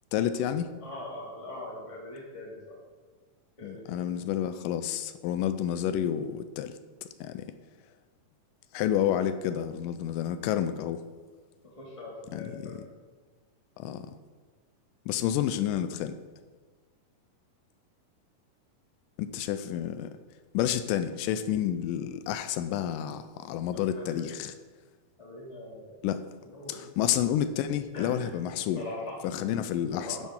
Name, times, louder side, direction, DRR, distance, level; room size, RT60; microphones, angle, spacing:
voice 1, 0.1-0.7 3.6-6.7 7.2-7.5 8.7-11.0 12.3-12.8 13.8-14.1 15.1-16.1 19.2-20.1 20.5-24.5 26.0-26.2 26.7-28.8 29.3-30.2, left 10 dB, 85° left, 11 dB, 2.2 m, -30 dB
voice 2, 0.8-2.6 3.6-4.2 11.6-12.8 23.7-24.3 25.2-26.0 26.5-26.8 27.9-29.2 29.7-30.2, left 2 dB, 10° left, -4 dB, 1.9 m, -42 dB
10.5 x 10.0 x 3.7 m, 1.4 s
omnidirectional pair, 3.8 m